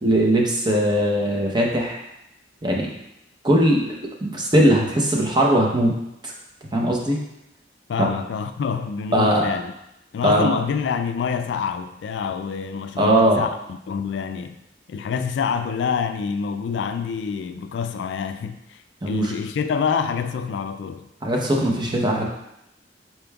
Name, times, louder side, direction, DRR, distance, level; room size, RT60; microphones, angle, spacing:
voice 1, 0.0-2.0 2.6-2.9 3.4-3.9 4.2-5.9 6.2-6.3 6.7-7.2 8.0-8.1 9.1-9.5 10.2-10.6 13.0-13.4 19.0-19.3 21.2-22.2, right 1 dB, 25° right, -1 dB, 0.7 m, -19 dB
voice 2, 7.9-9.7 10.1-14.6 14.9-21.1, left 6 dB, 75° left, 9 dB, 0.3 m, -27 dB
5.1 x 4.3 x 2.3 m, 0.84 s
head